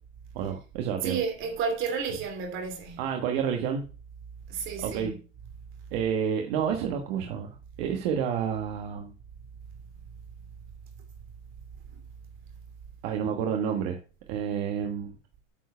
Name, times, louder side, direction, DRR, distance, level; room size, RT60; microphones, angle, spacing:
voice 1, 0.3-1.2 3.0-3.8 4.8-5.1 5.9-7.5 7.8-9.1 13.0-14.0 14.3-15.1, right 8 dB, 50° right, 1.5 m, -29 dB
voice 2, 1.0-3.1 4.5-5.2 11.9-12.0, right 6 dB, 30° right, 2.6 m, -31 dB
9.0 x 4.6 x 5.7 m
supercardioid pair, 160°, 38 cm